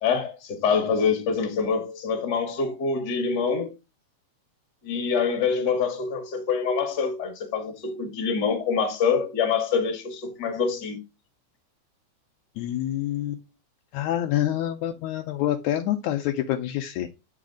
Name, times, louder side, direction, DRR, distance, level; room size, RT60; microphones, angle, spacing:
voice 1, 0.0-3.7 4.8-11.0, left 5 dB, 40° left, 1.8 m, -25 dB
voice 2, 12.6-13.4 13.9-17.1, left 12 dB, 80° left, 1.9 m, -27 dB
8.5 x 4.1 x 3.7 m
omnidirectional pair, 3.5 m